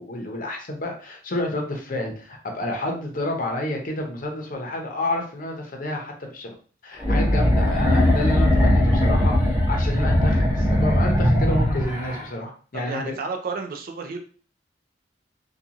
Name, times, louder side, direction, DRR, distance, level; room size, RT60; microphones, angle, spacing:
voice 1, 0.0-6.5 6.8-13.2, left 1 dB, 50° left, 2 dB, 0.7 m, -29 dB
sound 1, 7.0-12.2, left 1 dB, 15° right, 0.6 m, -19 dB
voice 2, 12.7-14.2, right 4 dB, 55° right, 3 dB, 0.4 m, -31 dB
2.8 x 2.3 x 2.4 m, 0.41 s
head